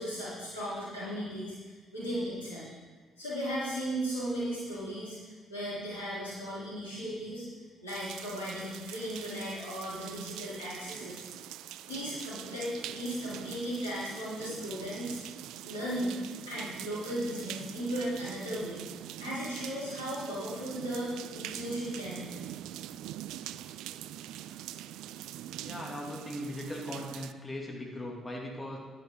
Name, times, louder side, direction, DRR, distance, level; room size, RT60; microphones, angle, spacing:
voice 1, 0.0-2.7 3.2-7.4 7.8-11.2 11.8-15.2 15.6-18.8 19.2-22.5, equal, 90° left, -10 dB, 3.6 m, -36 dB
sound 1, 7.9-27.3, right 12 dB, 70° right, 0.3 m, -44 dB
voice 2, 25.6-28.8, left 1 dB, 25° left, -1 dB, 2.6 m, -39 dB
10.5 x 10.5 x 3.8 m, 1.3 s
figure-of-eight pair, 45°, 0 cm